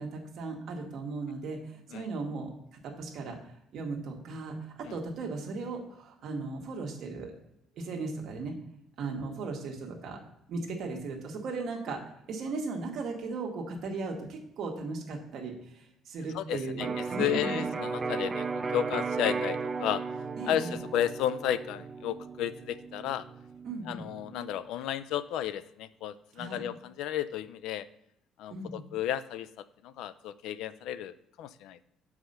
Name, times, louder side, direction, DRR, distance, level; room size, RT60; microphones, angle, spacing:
voice 1, 0.0-2.5 2.8-3.4 3.7-7.3 7.8-8.5 9.0-10.2 10.5-12.0 12.3-17.7 20.4-20.8 23.6-24.0 26.4-26.6 28.5-28.8, right 3 dB, 50° right, 1 dB, 1.3 m, -37 dB
voice 2, 16.3-20.0 20.4-23.2 23.9-27.9 28.4-31.8, left 10 dB, 75° left, 15 dB, 0.4 m, -33 dB
Electric guitar, 16.8-24.6, right 4 dB, 20° right, 0.3 m, -35 dB
5.6 x 4.8 x 6.4 m, 0.76 s
cardioid pair, 170°, 0 cm